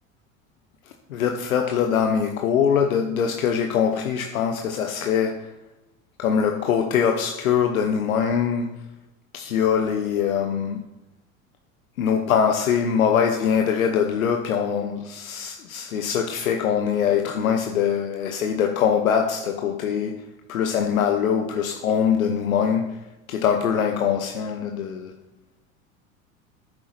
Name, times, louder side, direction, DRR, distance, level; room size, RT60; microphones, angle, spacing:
voice 1, 1.1-5.5 6.2-8.7 9.3-10.8 12.0-20.2 20.5-23.0 23.3-25.1, left 7 dB, 80° left, 4 dB, 0.8 m, -23 dB
9.7 x 7.4 x 3.2 m, 0.96 s
hypercardioid pair, 75°, 41 cm